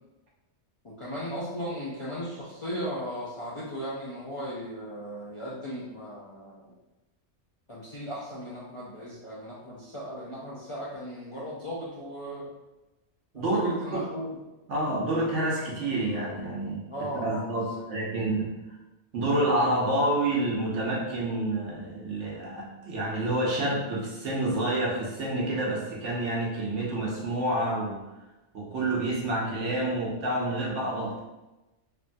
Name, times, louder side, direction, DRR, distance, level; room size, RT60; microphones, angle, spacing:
voice 1, 0.8-6.7 7.7-12.5 13.3-14.4 16.9-17.8, equal, 50° left, -8 dB, 0.3 m, -37 dB
voice 2, 13.3-14.0 14.7-16.8 17.2-18.5 19.1-28.0 28.5-31.2, right 1 dB, 85° right, -3 dB, 1.1 m, -28 dB
3.1 x 2.2 x 2.5 m, 1.0 s
omnidirectional pair, 1.2 m